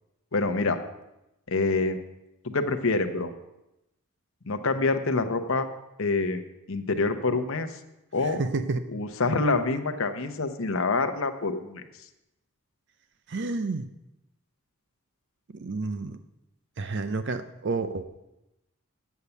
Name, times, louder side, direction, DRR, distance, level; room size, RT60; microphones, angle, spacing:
voice 1, 0.3-0.8 1.5-2.0 2.4-3.3 4.5-5.7 6.0-6.4 6.7-7.8 8.1-8.4 8.9-11.8, left 3 dB, 65° left, 7 dB, 0.9 m, -26 dB
voice 2, 8.4-8.8 13.3-13.9 15.5-16.2 16.8-18.3, right 3 dB, 50° right, 10 dB, 0.5 m, -30 dB
8.3 x 7.1 x 8.0 m, 0.91 s
head